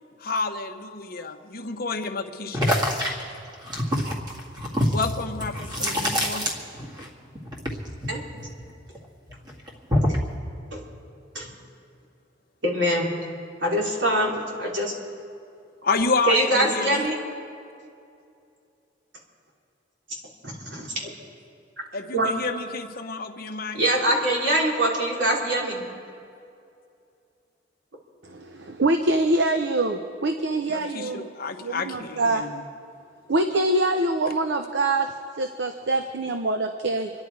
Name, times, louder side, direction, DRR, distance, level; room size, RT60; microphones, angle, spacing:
voice 1, 0.2-2.7 4.9-6.5 15.8-17.1 21.9-23.8 30.7-32.6, left 4 dB, 55° left, 6 dB, 1.0 m, -30 dB
sound 1, 2.5-7.1 7.3-9.0 9.3-10.3, equal, 25° right, 2.0 m, -26 dB
voice 2, 12.6-13.1 13.6-14.9 16.3-17.2 20.4-20.9 22.1-22.3 23.7-25.8, right 1 dB, 85° right, -3 dB, 3.3 m, -23 dB
voice 3, 28.2-31.3 31.6-32.5 33.3-37.1, right 2 dB, 70° right, 6 dB, 0.7 m, -24 dB
26.5 x 10.5 x 4.7 m, 2.5 s
head